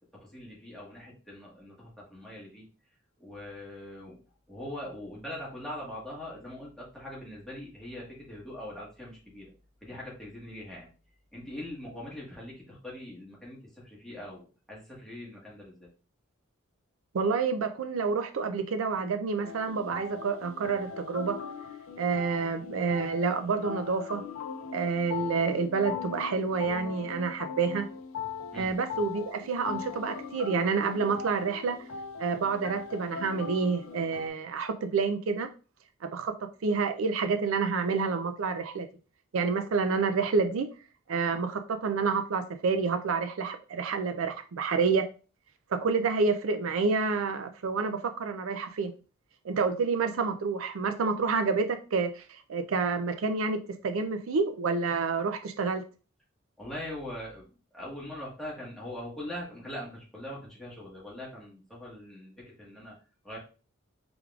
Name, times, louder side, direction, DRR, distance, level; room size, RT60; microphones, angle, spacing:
voice 1, 0.1-2.7 3.2-4.2 4.5-9.5 9.8-10.9 11.3-15.9 28.5-28.7 56.6-57.5 57.7-62.9 63.2-63.4, left 1 dB, ahead, 1.4 m, -42 dB
voice 2, 17.1-21.4 22.0-24.2 24.7-27.9 28.5-31.8 32.2-35.5 36.0-36.3 36.6-38.9 39.3-40.7 41.1-45.1 45.7-48.9 49.4-55.8, right 4 dB, 80° right, 0.4 m, -28 dB
sound 1, 19.4-34.3, left 6 dB, 85° left, 0.5 m, -40 dB
4.7 x 3.4 x 2.4 m
head